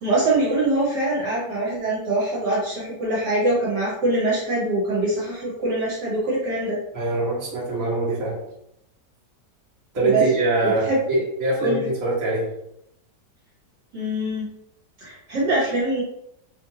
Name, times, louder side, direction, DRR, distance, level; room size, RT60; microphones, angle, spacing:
voice 1, 0.0-6.8 10.0-10.2 10.6-11.0 11.6-11.9 13.9-14.5 15.0-16.0, right 2 dB, 70° right, -7 dB, 1.8 m, -23 dB
voice 2, 6.9-8.3 9.9-12.4, right 2 dB, 50° right, -7 dB, 1.7 m, -23 dB
4.4 x 2.6 x 2.8 m, 0.80 s
omnidirectional pair, 1.9 m